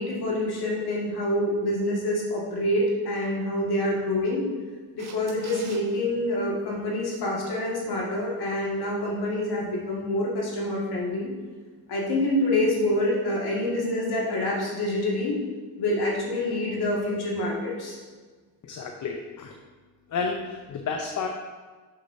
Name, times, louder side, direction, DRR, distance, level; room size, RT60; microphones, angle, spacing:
voice 1, 0.0-4.4 4.9-11.3 11.9-15.4 15.8-18.0, left 1 dB, 65° left, -3 dB, 2.0 m, -26 dB
Camera, 5.0-5.8 12.5-12.6, right 5 dB, 40° right, 0.9 m, -44 dB
voice 2, 18.6-19.5 20.1-21.3, left 5 dB, 50° left, 3 dB, 0.7 m, -31 dB
7.3 x 6.5 x 2.7 m, 1.4 s
cardioid pair, 90°, 40 cm